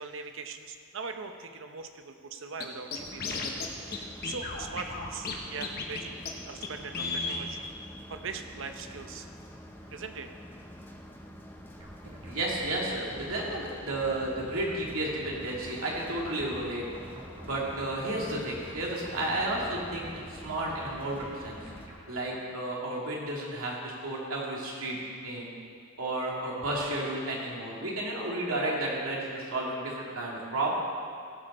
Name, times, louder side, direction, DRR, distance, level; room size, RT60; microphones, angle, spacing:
voice 1, 0.0-6.2 6.5-7.7 8.1-9.3 9.9-10.3, right 5 dB, 65° right, 7 dB, 0.8 m, -41 dB
Scratching (performance technique), 2.6-2.7 2.9-3.7 3.9-4.0 4.2-5.4 5.6-6.0 6.3-6.4 6.6-6.7 6.9-7.4, left 4 dB, 50° left, 1.1 m, -33 dB
sound 1, 3.0-21.9, equal, 10° left, 0.9 m, -48 dB
sound 2, 11.8-22.1, equal, 25° right, 1.3 m, -49 dB
voice 2, 12.0-16.8 17.4-21.6 22.1-25.0 25.2-25.5 26.0-30.7, right 1 dB, 85° right, -3 dB, 2.5 m, -32 dB
16.5 x 7.7 x 4.3 m, 2.3 s
head